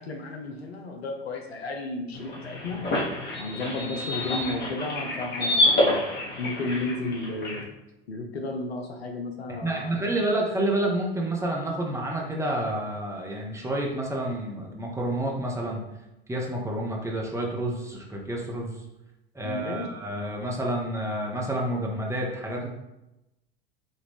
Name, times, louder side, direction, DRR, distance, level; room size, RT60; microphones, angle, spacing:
voice 1, 0.0-2.8 3.4-6.0 6.4-7.6 8.1-10.0 19.4-19.9, left 2 dB, 75° left, 2 dB, 0.8 m, -33 dB
sound 1, 2.1-7.6, left 1 dB, 35° left, 1.3 m, -28 dB
voice 2, 9.6-15.8 16.3-18.8 19.3-22.7, right 1 dB, 10° right, -1 dB, 0.8 m, -29 dB
5.3 x 2.5 x 3.4 m, 0.93 s
figure-of-eight pair, 75°, 31 cm